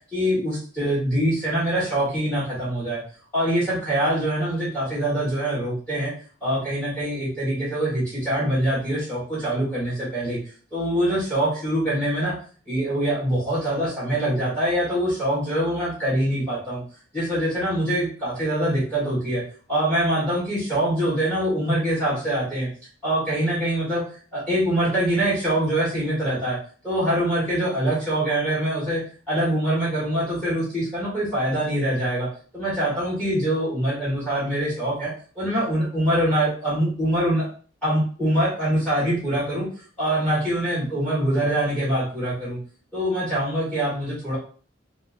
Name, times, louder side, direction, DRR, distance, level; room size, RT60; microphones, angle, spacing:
voice 1, 0.1-3.0 3.3-6.1 6.4-10.4 10.7-12.3 12.7-16.8 17.1-19.4 19.7-22.7 23.0-24.0 24.3-26.6 26.8-29.0 29.3-32.3 32.5-37.4 37.8-39.7 40.0-42.6 42.9-44.4, right 1 dB, 10° left, -8 dB, 1.2 m, -24 dB
3.6 x 2.4 x 2.6 m, 0.43 s
head